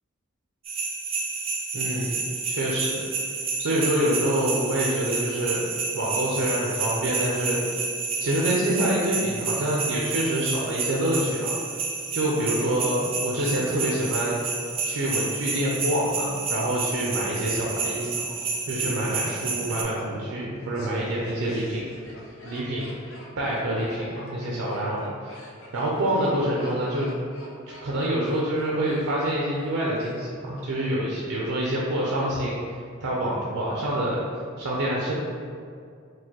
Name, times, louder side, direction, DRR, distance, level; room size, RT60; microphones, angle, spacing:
sound 1, 0.6-19.8, right 4 dB, 30° right, 0.3 m, -30 dB
voice 1, 1.7-3.0 3.6-5.7 5.9-7.6 8.2-11.5 12.1-14.4 14.8-18.1 18.7-21.8 22.4-22.8 23.4-25.4 25.7-27.1 27.8-34.2 34.6-35.1, right 1 dB, 90° right, -4 dB, 0.5 m, -26 dB
Laughter, 17.7-30.7 30.9-31.0, left 2 dB, 70° left, 0.6 m, -45 dB
4.6 x 2.1 x 2.8 m, 2.3 s
head